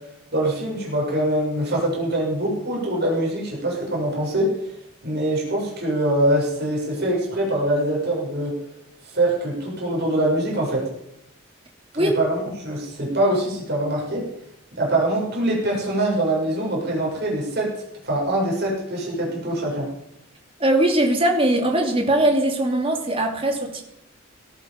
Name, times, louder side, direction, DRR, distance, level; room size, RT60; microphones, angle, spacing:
voice 1, 0.3-4.5 5.0-8.5 9.0-10.9 11.9-14.3 14.8-19.9, right 1 dB, 50° right, -3 dB, 6.9 m, -23 dB
voice 2, 20.6-23.8, right 1 dB, 25° right, 2 dB, 2.8 m, -20 dB
18.5 x 13.5 x 5.3 m, 0.78 s
head